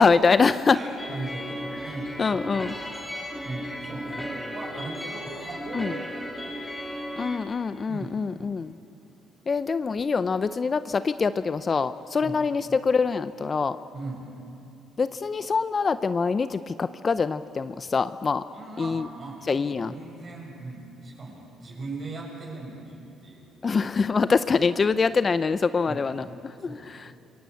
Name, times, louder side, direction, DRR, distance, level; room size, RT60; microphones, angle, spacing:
voice 1, 0.0-0.8 2.2-2.7 5.7-5.9 7.2-8.8 9.5-13.8 15.0-18.4 18.8-19.1 19.5-19.9 23.6-27.1, left 5 dB, 35° left, 13 dB, 0.6 m, -24 dB
voice 2, 0.7-2.7 3.4-6.3 7.9-8.3 12.2-12.4 13.9-14.3 18.5-23.6 25.9-26.2 26.6-26.9, right 2 dB, 40° right, -1 dB, 7.4 m, -39 dB
sound 1, 1.0-7.4, equal, 10° left, 3.9 m, -35 dB
27.0 x 22.0 x 8.4 m, 2.7 s
cardioid pair, 105°, 0 cm